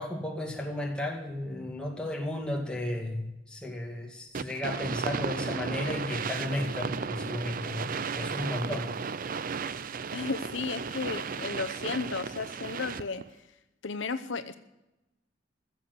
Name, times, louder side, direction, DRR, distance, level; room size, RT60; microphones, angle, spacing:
voice 1, 0.0-8.9, left 1 dB, 5° left, 0 dB, 2.3 m, -34 dB
sound 1, 4.3-13.2, right 5 dB, 45° right, 0.5 m, -34 dB
voice 2, 10.1-13.2 13.8-14.6, left 4 dB, 75° left, 10 dB, 0.8 m, -34 dB
15.5 x 7.6 x 8.0 m, 0.96 s
head